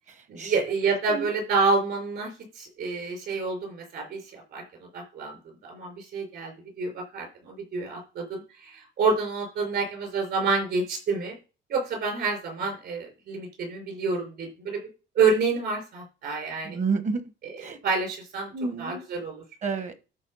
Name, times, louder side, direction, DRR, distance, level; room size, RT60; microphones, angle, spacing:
voice 1, 0.3-11.4 11.7-14.8 15.2-16.8 17.4-18.5 18.8-19.4, right 4 dB, 55° right, 1 dB, 5.6 m, -28 dB
voice 2, 0.9-1.3 16.6-17.2 17.6-17.8 18.5-19.0 19.6-19.9, right 4 dB, 35° right, 10 dB, 1.1 m, -29 dB
12.5 x 4.2 x 5.5 m, 0.34 s
cardioid pair, 160°, 21 cm